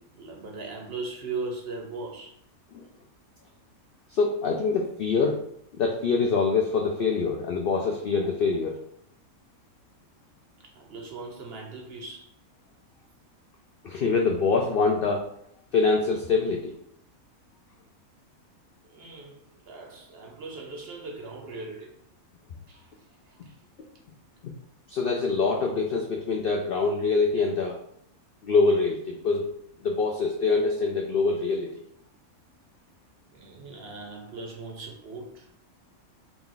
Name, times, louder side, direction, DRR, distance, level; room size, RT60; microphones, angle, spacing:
voice 1, 0.2-2.3 10.6-12.3 18.9-22.0 22.7-22.9 23.3-23.6 33.3-35.5, right 3 dB, 55° right, 2 dB, 0.8 m, -39 dB
voice 2, 4.1-5.4 5.7-8.8 13.8-15.3 15.7-16.7 24.9-27.8 28.4-29.5 29.8-31.8, left 4 dB, 75° left, 1 dB, 0.5 m, -25 dB
4.0 x 2.3 x 3.8 m, 0.70 s
omnidirectional pair, 1.5 m